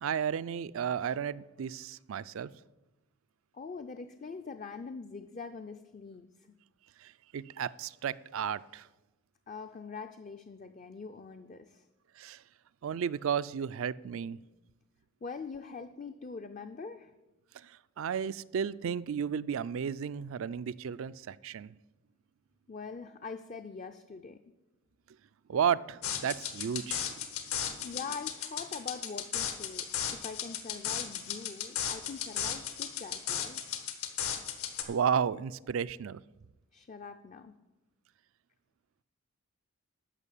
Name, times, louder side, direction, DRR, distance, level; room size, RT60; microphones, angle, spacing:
voice 1, 0.0-2.5 7.0-8.9 12.2-12.4 12.8-14.4 17.5-21.7 25.5-27.1 27.7-27.8 34.9-36.2, right 7 dB, 65° right, 17 dB, 0.3 m, -33 dB
voice 2, 3.5-6.6 9.5-11.9 14.1-14.3 15.2-17.2 22.7-24.4 27.3-33.6 36.7-37.5, left 4 dB, 35° left, 8 dB, 0.4 m, -43 dB
sound 1, 26.0-34.8, left 9 dB, 75° left, 1.4 m, -35 dB
12.5 x 5.8 x 8.3 m, 1.0 s
head